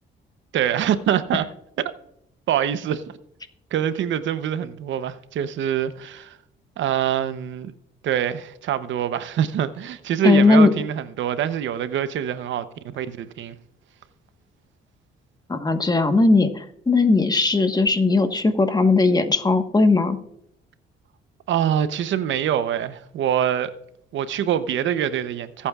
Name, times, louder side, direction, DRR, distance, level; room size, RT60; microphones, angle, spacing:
voice 1, 0.5-1.5 2.5-3.2 3.7-6.4 6.8-7.7 8.0-12.6 12.9-13.6 21.5-23.7 24.1-25.7, right 9 dB, 75° right, 0.8 m, -24 dB
voice 2, 10.2-10.7 15.5-20.2, left 3 dB, 20° left, 1.3 m, -18 dB
23.0 x 8.5 x 2.4 m
cardioid pair, 90°, 20 cm